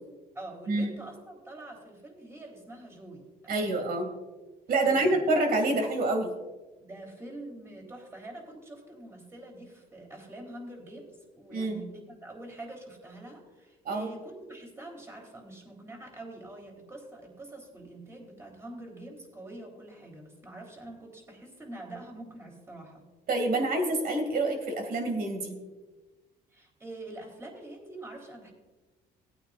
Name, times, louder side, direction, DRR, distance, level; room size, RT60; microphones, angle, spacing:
voice 1, 0.3-3.9 4.8-5.2 5.6-5.8 6.8-23.0 26.5-28.5, right 2 dB, 15° right, 1 dB, 3.7 m, -45 dB
voice 2, 3.5-4.1 4.7-6.3 11.5-11.8 13.8-14.1 23.3-25.6, right 2 dB, 60° right, 4 dB, 2.5 m, -27 dB
18.5 x 9.0 x 2.5 m, 1.2 s
cardioid pair, 110°, 17 cm